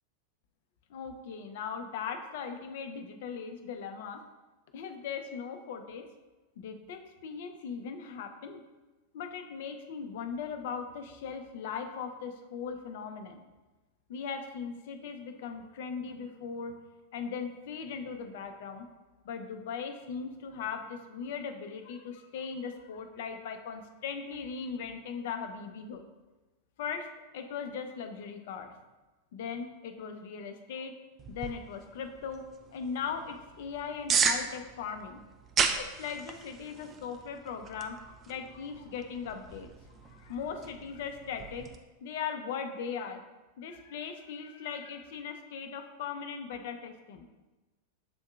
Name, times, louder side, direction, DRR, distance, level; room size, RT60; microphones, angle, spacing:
voice 1, 0.9-4.2 4.7-6.0 6.6-8.6 9.1-13.4 14.1-16.7 17.1-18.9 19.2-26.0 26.8-27.1 27.3-28.7 29.3-30.9 31.3-32.4 32.7-35.2 35.7-39.7 40.0-41.7 42.0-43.2 43.6-47.3, left 6 dB, 55° left, 7 dB, 0.4 m, -39 dB
sound 1, 31.2-41.8, right 6 dB, 25° right, 0.4 m, -36 dB
7.5 x 2.6 x 2.3 m, 1.2 s
figure-of-eight pair, 90°, 0 cm